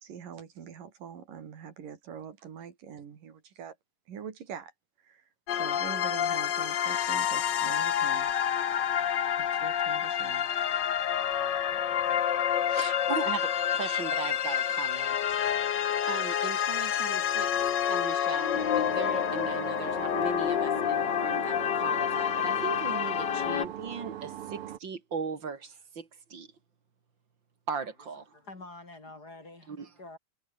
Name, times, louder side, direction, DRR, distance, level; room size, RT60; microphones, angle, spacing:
voice 1, 0.0-3.8 4.1-4.7 5.0-5.2 5.5-8.3 9.4-10.5 13.8-14.0, right 7 dB, 85° right, 4.5 m, -44 dB
sound 1, 5.5-23.7, left 9 dB, 80° left, 1.0 m, -28 dB
voice 2, 12.7-15.7 16.1-17.5 17.9-26.5 27.7-28.3 29.7-29.9, right 5 dB, 35° right, 2.8 m, -38 dB
sound 2, 18.5-24.8, right 11 dB, 65° right, 1.5 m, -40 dB
voice 3, 28.3-30.2, left 2 dB, 30° left, 3.6 m, -47 dB
omnidirectional pair, 3.8 m